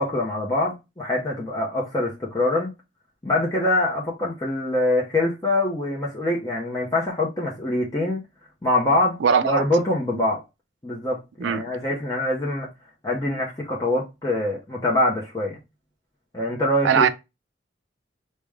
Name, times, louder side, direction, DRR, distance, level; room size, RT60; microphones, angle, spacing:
voice 1, 0.0-2.7 3.2-8.2 8.6-10.4 10.8-12.7 13.0-15.6 16.3-17.1, left 1 dB, 20° left, 0.7 m, -24 dB
voice 2, 9.2-9.6 11.4-11.6 16.8-17.1, right 7 dB, 85° right, 0.4 m, -20 dB
4.7 x 2.2 x 3.5 m
head